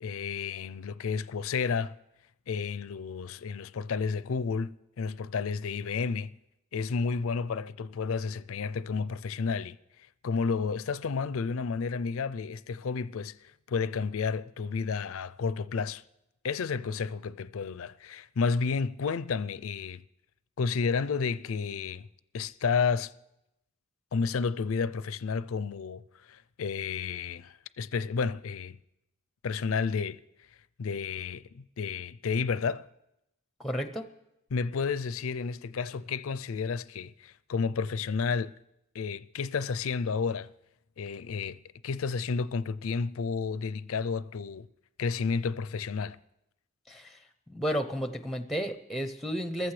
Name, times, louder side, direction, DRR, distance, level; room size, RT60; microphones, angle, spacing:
voice 1, 0.0-2.0 2.5-6.3 6.7-9.8 10.2-16.0 16.4-20.0 20.6-22.1 22.3-23.1 24.1-26.0 26.3-28.8 29.4-30.2 30.8-32.9 34.5-38.5 38.9-40.5 41.0-41.6 41.8-44.7 45.0-46.2, left 5 dB, 75° left, 0.4 m, -31 dB
voice 2, 33.6-34.1 46.9-47.2 47.5-49.7, equal, ahead, 0.6 m, -32 dB
27.5 x 14.5 x 3.3 m
head